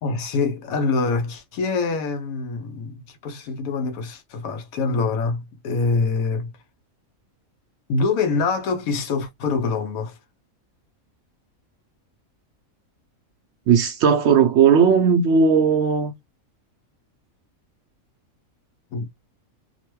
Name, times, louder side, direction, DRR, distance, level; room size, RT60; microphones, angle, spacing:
voice 1, 0.0-6.5 7.9-10.2 18.9-19.1, left 4 dB, 80° left, 1.1 m, -25 dB
voice 2, 13.7-16.1, right 6 dB, 65° right, 0.7 m, -17 dB
2.9 x 2.1 x 3.0 m
omnidirectional pair, 1.5 m